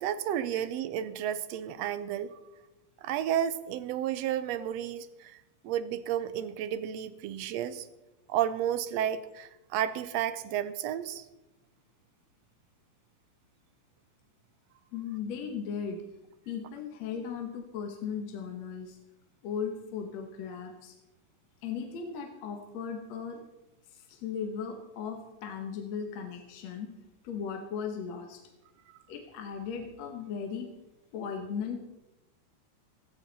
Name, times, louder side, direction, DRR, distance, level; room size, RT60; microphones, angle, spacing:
voice 1, 0.0-2.4 3.0-5.4 5.6-7.9 8.3-11.2, right 10 dB, 75° right, 13 dB, 1.6 m, -32 dB
voice 2, 14.9-16.0 16.5-19.0 19.4-20.9 21.6-23.4 23.9-26.9 27.2-28.4 29.1-30.7 31.1-31.8, left 6 dB, 65° left, 3 dB, 2.3 m, -37 dB
16.5 x 13.5 x 4.1 m, 1.0 s
omnidirectional pair, 3.6 m